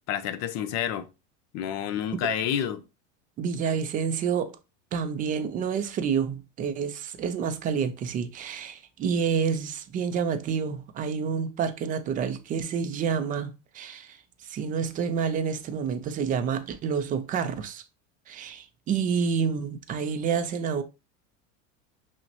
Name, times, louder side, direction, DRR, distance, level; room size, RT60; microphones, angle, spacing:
voice 1, 0.1-1.1 1.5-2.8, left 9 dB, 45° left, 0.5 m, -29 dB
voice 2, 3.4-4.6 4.9-14.2 14.4-17.8 18.3-20.8, right 6 dB, 25° right, 0.3 m, -28 dB
5.7 x 2.1 x 2.7 m
supercardioid pair, 130°, 37 cm